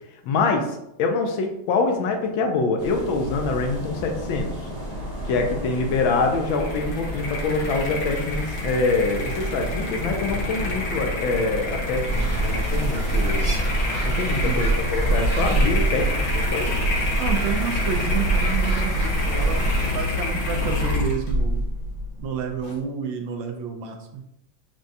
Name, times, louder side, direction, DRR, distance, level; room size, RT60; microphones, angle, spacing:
voice 1, 0.2-4.5 5.3-13.4 14.0-16.8, left 3 dB, 75° left, 3 dB, 1.3 m, -25 dB
sound 1, 2.8-20.8, equal, 35° left, 0.6 m, -33 dB
sound 2, 6.4-22.8, left 2 dB, 55° left, 1.1 m, -28 dB
sound 3, 12.1-19.9, right 2 dB, 35° right, 0.6 m, -24 dB
voice 2, 14.4-14.7 17.2-21.6 22.2-24.2, right 7 dB, 75° right, 4 dB, 1.3 m, -30 dB
6.2 x 2.2 x 2.7 m, 0.82 s
omnidirectional pair, 2.3 m